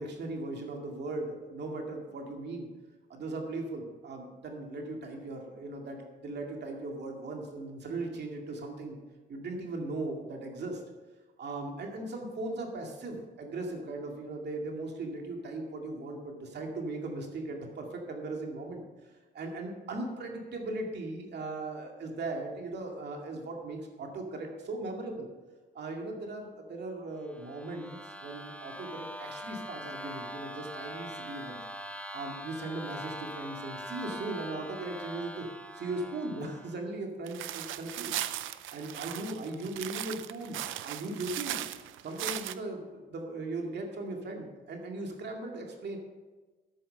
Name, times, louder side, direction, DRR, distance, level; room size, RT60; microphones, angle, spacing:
voice 1, 0.0-2.7 3.1-9.0 9.3-10.8 11.4-18.8 19.3-25.3 25.7-31.6 32.1-35.4 35.7-38.2 38.7-41.6 42.0-46.0, right 2 dB, 60° right, 1 dB, 2.2 m, -38 dB
sound 1, 27.2-36.9, equal, 5° left, 0.9 m, -43 dB
sound 2, 37.3-42.5, right 13 dB, 85° right, 0.6 m, -38 dB
10.5 x 8.8 x 5.6 m, 1.3 s
cardioid pair, 90°, 20 cm